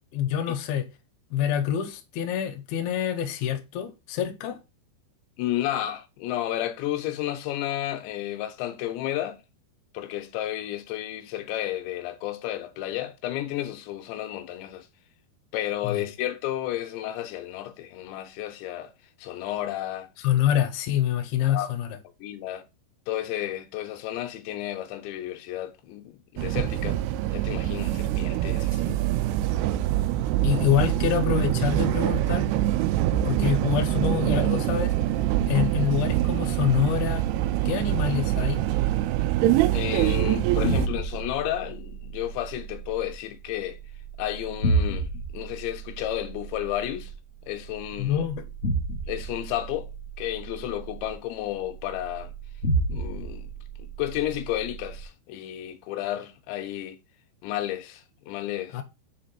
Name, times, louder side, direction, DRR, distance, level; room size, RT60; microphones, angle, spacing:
voice 1, 0.1-0.9 1.3-4.6 15.8-16.0 20.2-21.9 28.7-29.0 30.4-32.5 33.1-34.9 35.5-37.2 37.7-38.6 48.0-48.4 58.7-58.8, left 10 dB, 70° left, 2.7 m, -26 dB
voice 2, 5.4-9.4 9.9-14.9 15.5-18.9 19.2-20.1 21.5-21.7 22.2-22.6 23.1-27.0 27.3-29.0 39.7-43.8 44.2-47.1 47.5-48.2 49.1-49.9 50.2-52.3 52.9-53.5 53.8-57.0 57.4-58.8, left 13 dB, 90° left, 3.0 m, -32 dB
sound 1, 26.4-40.9, right 14 dB, 85° right, 2.4 m, -24 dB
sound 2, 40.1-55.0, right 2 dB, 35° left, 1.2 m, -32 dB
6.0 x 5.1 x 4.3 m
omnidirectional pair, 5.1 m